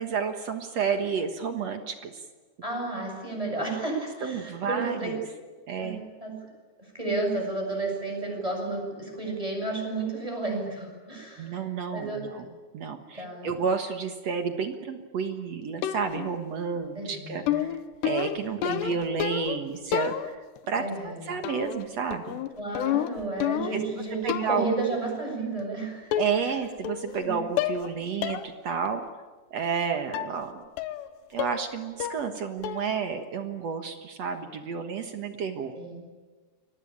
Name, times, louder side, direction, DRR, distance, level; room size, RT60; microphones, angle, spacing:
voice 1, 0.0-2.1 4.2-5.2 5.7-6.0 11.4-12.5 12.7-17.8 18.0-20.4 20.7-22.4 23.7-23.8 24.2-24.7 26.2-29.0 29.5-30.6 31.3-35.7, right 6 dB, 60° right, 7 dB, 1.8 m, -31 dB
voice 2, 2.6-5.2 5.8-6.4 6.9-11.5 11.9-12.4 13.1-13.5 16.9-17.6 18.6-18.9 20.8-21.3 22.6-26.1 27.2-27.4 35.7-36.0, right 3 dB, 5° right, 0 dB, 7.4 m, -32 dB
sound 1, 15.8-16.4 17.5-19.6 19.9-20.6 21.4-21.9 22.1-23.9 24.3-24.7 25.6-25.7 26.1-26.6 26.9-27.3 27.6-27.9 28.2-28.5 28.9-29.0 30.1-30.4 30.8-31.1 31.4-31.7 32.0-32.4 32.6-33.0, left 12 dB, 90° left, 3.3 m, -30 dB
29.5 x 22.5 x 8.8 m, 1.4 s
omnidirectional pair, 4.8 m